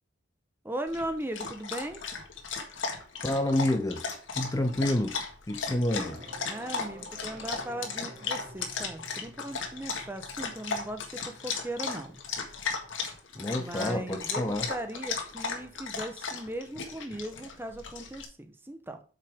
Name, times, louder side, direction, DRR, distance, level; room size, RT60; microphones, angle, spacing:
voice 1, 0.6-2.0 6.4-12.2 13.5-19.0, right 1 dB, 10° right, 0.9 m, -38 dB
Dog, 0.9-18.2, left 5 dB, 80° left, 1.8 m, -36 dB
voice 2, 3.2-4.0 4.3-5.1 5.5-6.2 13.3-14.7, left 1 dB, 20° left, 0.6 m, -28 dB
sound 1, 5.9-12.9, right 1 dB, 40° right, 1.6 m, -51 dB
8.3 x 6.0 x 3.6 m
head